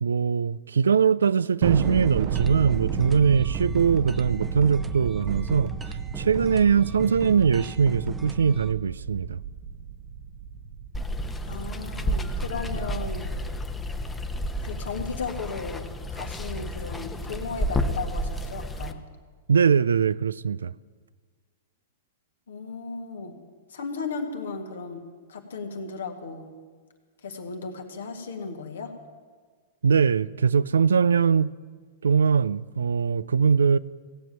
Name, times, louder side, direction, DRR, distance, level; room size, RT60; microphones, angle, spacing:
voice 1, 0.0-5.7 6.2-9.4 19.5-20.7 29.8-31.5 32.0-33.8, right 6 dB, 80° right, 0.3 m, -22 dB
Thunder, 1.6-12.3, right 7 dB, 55° right, 0.8 m, -32 dB
sound 1, 1.8-8.7, right 3 dB, 15° right, 0.8 m, -39 dB
Water, 10.9-18.9, equal, 15° left, 0.9 m, -31 dB
voice 2, 11.5-13.3 14.6-19.0 22.5-23.4 23.7-25.0 25.3-26.5 27.2-28.9, left 4 dB, 75° left, 1.9 m, -35 dB
16.5 x 7.6 x 9.0 m
hypercardioid pair, 105°, 0 cm